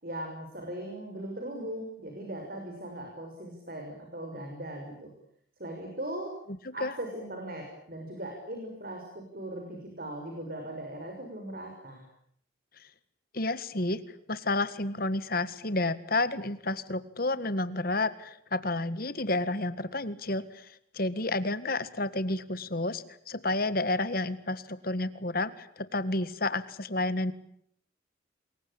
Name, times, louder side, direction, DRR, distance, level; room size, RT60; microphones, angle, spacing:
voice 1, 0.0-5.1 5.6-6.3 6.7-12.0, right 1 dB, 45° right, 2 dB, 6.5 m, -39 dB
voice 2, 13.3-14.0 14.3-27.3, left 2 dB, 45° left, 14 dB, 1.8 m, -30 dB
27.5 x 22.5 x 8.8 m, 0.68 s
head